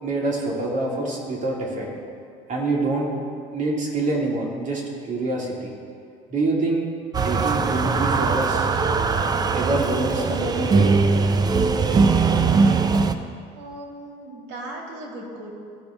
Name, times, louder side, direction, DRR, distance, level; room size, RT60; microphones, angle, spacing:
voice 1, 0.0-1.9 2.5-3.1 3.5-4.8 5.1-5.7 6.3-6.8 7.2-8.7 9.5-11.0, right 2 dB, 45° right, -2 dB, 2.1 m, -25 dB
sound 1, 7.1-13.1, right 4 dB, 25° right, 0.4 m, -20 dB
voice 2, 13.6-15.5, right 1 dB, 90° right, -1 dB, 2.1 m, -37 dB
15.0 x 5.2 x 3.5 m, 2.3 s
cardioid pair, 110°, 17 cm